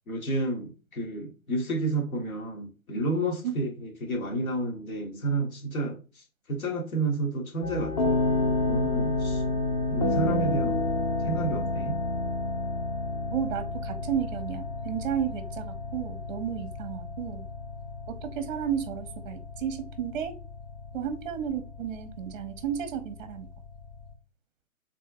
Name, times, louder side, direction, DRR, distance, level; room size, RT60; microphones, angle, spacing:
voice 1, 0.1-8.4 8.7-9.4 9.9-10.8 11.2-12.0, right 2 dB, 70° left, 1.7 m, -31 dB
sound 1, 7.6-24.1, left 2 dB, 25° left, 0.8 m, -31 dB
voice 2, 13.3-17.5 18.1-20.3 20.9-23.5, right 9 dB, 35° right, 0.6 m, -33 dB
5.7 x 3.6 x 2.5 m
hypercardioid pair, 135°, 44 cm